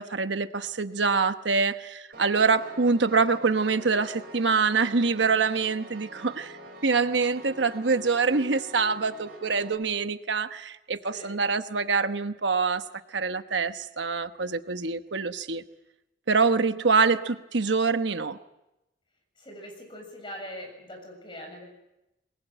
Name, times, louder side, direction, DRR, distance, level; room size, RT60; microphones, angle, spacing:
voice 1, 0.0-6.5 6.8-12.8 13.1-15.6 16.3-18.4, right 4 dB, 85° right, 10 dB, 1.1 m, -25 dB
Piano, 2.1-9.7, right 1 dB, 55° right, 5.7 m, -46 dB
voice 2, 11.1-11.4 19.4-21.6, equal, 25° left, 2 dB, 7.2 m, -42 dB
23.5 x 21.0 x 9.1 m, 0.92 s
head